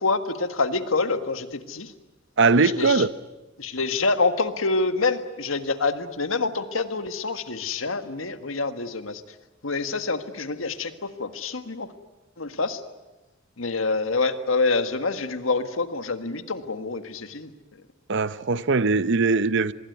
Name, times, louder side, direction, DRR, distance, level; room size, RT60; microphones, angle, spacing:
voice 1, 0.0-1.9 2.5-3.0 3.6-9.2 9.6-11.9 12.4-12.8 13.6-17.5, left 3 dB, 80° left, 1.7 m, -26 dB
voice 2, 2.4-3.1 18.1-19.7, right 4 dB, 65° right, 0.8 m, -20 dB
25.5 x 21.0 x 9.5 m
head